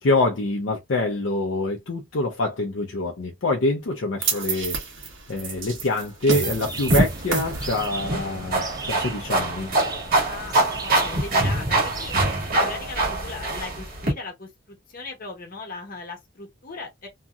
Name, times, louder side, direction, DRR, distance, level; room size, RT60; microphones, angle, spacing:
voice 1, 0.0-4.8 5.3-9.7, left 2 dB, 65° left, 0.5 m, -25 dB
sound 1, 4.2-10.5, right 4 dB, 70° right, 1.2 m, -31 dB
sound 2, 6.5-12.3, right 4 dB, 20° right, 0.4 m, -38 dB
sound 3, 6.9-14.1, right 2 dB, 45° right, 1.3 m, -24 dB
voice 2, 10.3-17.1, left 3 dB, 45° left, 1.0 m, -38 dB
2.8 x 2.7 x 2.3 m
head